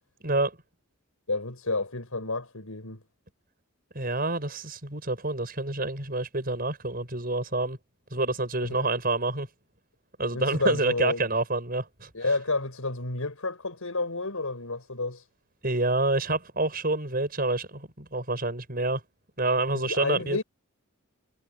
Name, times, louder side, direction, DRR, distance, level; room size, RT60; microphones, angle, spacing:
voice 1, 1.3-3.0 8.6-8.8 10.3-11.3 12.1-15.3 19.7-20.4, left 3 dB, 90° left, 5.4 m, -30 dB
voice 2, 4.0-7.8 8.1-9.5 10.2-12.1 15.6-19.0 19.4-20.4, right 2 dB, 45° right, 7.0 m, -27 dB
head